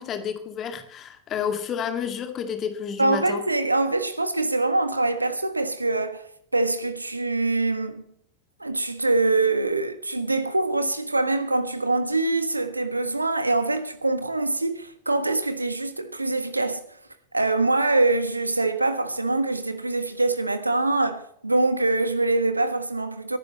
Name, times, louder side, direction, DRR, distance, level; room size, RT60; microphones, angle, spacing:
voice 1, 0.0-3.4, left 7 dB, 30° left, 2.2 m, -30 dB
voice 2, 3.0-6.3 6.5-8.0 8.6-16.8 17.3-23.4, right 2 dB, 85° right, 1.4 m, -24 dB
23.0 x 12.0 x 3.1 m
figure-of-eight pair, 90°, 0 cm